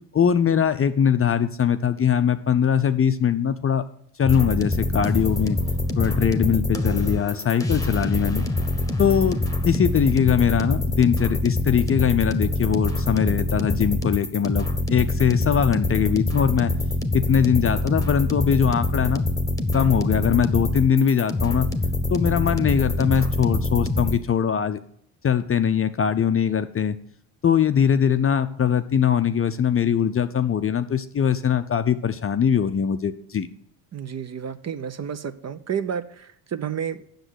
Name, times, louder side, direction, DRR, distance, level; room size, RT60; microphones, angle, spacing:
voice 1, 0.1-3.8 4.2-5.6 6.0-8.5 9.0-16.7 17.1-19.2 19.7-21.7 22.1-24.8 25.2-27.0 27.4-33.5, left 8 dB, 30° left, 10 dB, 0.6 m, -21 dB
sound 1, 4.2-24.2, left 2 dB, 5° left, 1.1 m, -25 dB
voice 2, 33.9-37.1, right 8 dB, 35° right, 12 dB, 0.6 m, -31 dB
7.9 x 6.4 x 6.3 m, 0.68 s
supercardioid pair, 65°, 49 cm